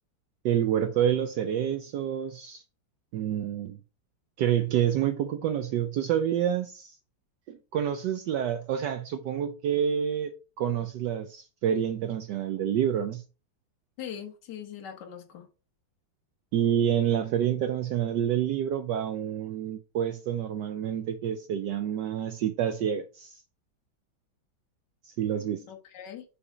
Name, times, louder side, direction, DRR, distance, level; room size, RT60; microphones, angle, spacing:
voice 1, 0.4-2.6 3.1-3.8 4.4-7.0 7.5-13.2 16.5-23.4 25.0-25.7, right 9 dB, 75° right, 1.1 m, -28 dB
voice 2, 14.0-15.5 25.7-26.2, left 9 dB, 65° left, 1.7 m, -41 dB
6.9 x 3.5 x 5.0 m
omnidirectional pair, 2.1 m